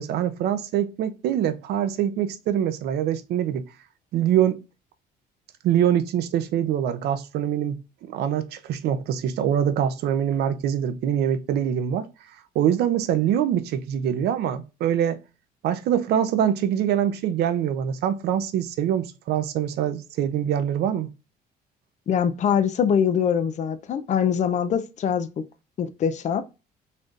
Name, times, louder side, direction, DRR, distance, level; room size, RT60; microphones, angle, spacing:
voice 1, 0.0-3.6 4.1-4.6 5.6-7.8 8.1-12.1 12.5-15.2 15.6-21.1, right 10 dB, 75° right, 0.6 m, -24 dB
voice 2, 22.1-25.3 25.8-26.4, left 8 dB, 45° left, 0.5 m, -23 dB
4.1 x 3.2 x 2.5 m
cardioid pair, 110°, 17 cm